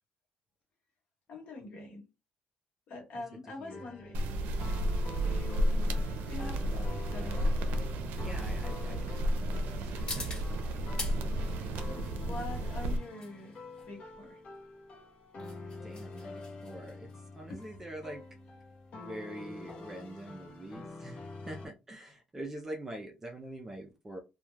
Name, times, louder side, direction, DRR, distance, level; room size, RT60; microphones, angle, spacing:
voice 1, 1.3-2.0 2.9-4.4 5.2-7.5 8.9-9.0 11.8-14.4 17.5-17.6, left 2 dB, 60° left, 1.2 m, -45 dB
sound 1, 3.7-21.7, left 3 dB, 45° left, 0.7 m, -47 dB
sound 2, 4.1-13.0, right 1 dB, 85° right, 0.5 m, -32 dB
voice 2, 8.2-10.3 15.8-17.1 17.4-18.2 19.0-21.2 21.5-24.2, right 1 dB, 15° right, 0.4 m, -44 dB
sound 3, 10.1-21.1, left 2 dB, 30° left, 1.3 m, -48 dB
2.2 x 2.2 x 3.1 m
cardioid pair, 145°, 3 cm